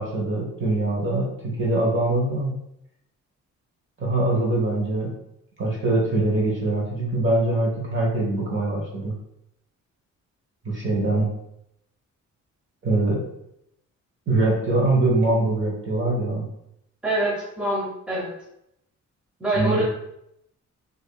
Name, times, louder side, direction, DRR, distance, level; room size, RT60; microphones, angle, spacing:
voice 1, 0.0-2.5 4.0-5.1 5.6-9.1 10.6-11.3 12.8-13.3 14.3-16.5 19.5-19.8, right 2 dB, 40° right, -2 dB, 1.0 m, -23 dB
voice 2, 17.0-18.3 19.4-19.8, right 1 dB, 5° right, -5 dB, 0.7 m, -25 dB
4.9 x 2.6 x 2.2 m, 0.78 s
wide cardioid pair, 175°, 29 cm